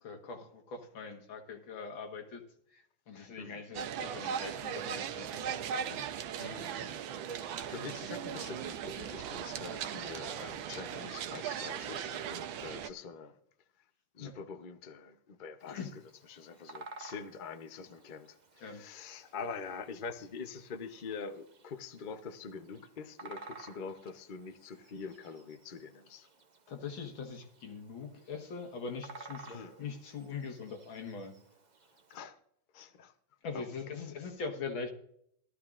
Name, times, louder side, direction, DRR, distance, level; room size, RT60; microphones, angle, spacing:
voice 1, 0.0-2.4 2.7-5.4 5.7-6.0 14.2-14.3 15.7-15.9 18.6-18.8 26.7-29.5 29.8-31.3 33.4-34.9, left 5 dB, 90° left, 2.3 m, -42 dB
sound 1, 3.7-12.9, right 8 dB, 85° right, 1.5 m, -38 dB
voice 2, 6.4-13.4 14.1-15.9 16.3-26.3 29.5-29.7 32.1-32.4 32.7-33.1 33.5-33.7, left 5 dB, 55° left, 0.5 m, -45 dB
Bird vocalization bird call bird song, 15.6-32.2, right 3 dB, 50° right, 0.5 m, -55 dB
18.0 x 12.5 x 2.5 m
omnidirectional pair, 2.1 m